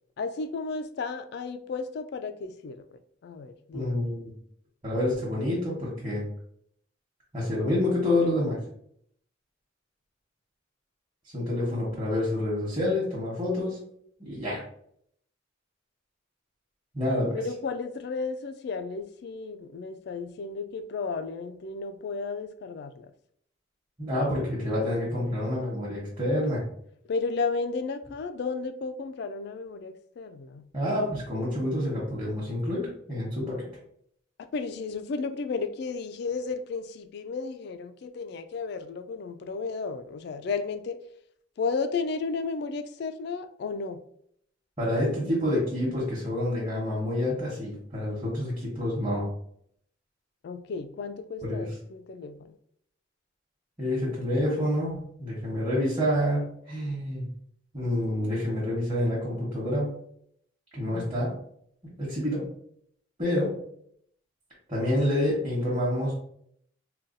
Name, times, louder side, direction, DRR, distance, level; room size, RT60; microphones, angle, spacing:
voice 1, 0.2-4.0 17.3-23.1 27.1-30.7 34.5-41.0 41.6-44.0 50.4-52.5 60.9-61.2, left 4 dB, 55° left, 9 dB, 0.3 m, -33 dB
voice 2, 3.7-4.3 4.8-6.2 7.3-8.6 11.3-13.8 14.2-14.6 16.9-17.4 24.0-26.7 30.7-33.6 44.8-49.2 51.4-51.7 53.8-57.3 57.7-59.9 60.7-61.4 62.0-62.4 63.2-63.6 64.7-66.1, left 1 dB, 25° right, -8 dB, 1.0 m, -28 dB
3.9 x 2.2 x 2.6 m, 0.67 s
head